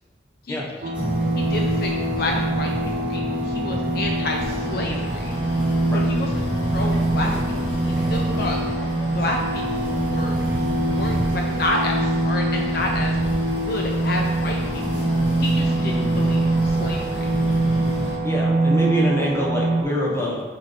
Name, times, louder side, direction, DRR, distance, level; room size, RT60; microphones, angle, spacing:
voice 1, 0.4-0.9 1.3-2.7 3.0-5.3 5.9-6.4 6.7-7.6 7.8-8.6 9.1-10.4 10.7-13.2 13.5-15.1 15.4-17.1, left 2 dB, 55° left, 1 dB, 0.6 m, -30 dB
sound 1, 0.8-19.8, right 2 dB, 45° right, 0.4 m, -24 dB
sound 2, 0.9-18.1, equal, 5° right, 1.4 m, -31 dB
Boat Water vehicle, 4.4-18.2, left 1 dB, 75° left, 2.0 m, -38 dB
voice 2, 18.2-20.4, equal, 15° left, -4 dB, 1.1 m, -25 dB
5.8 x 4.4 x 4.4 m, 1.3 s
head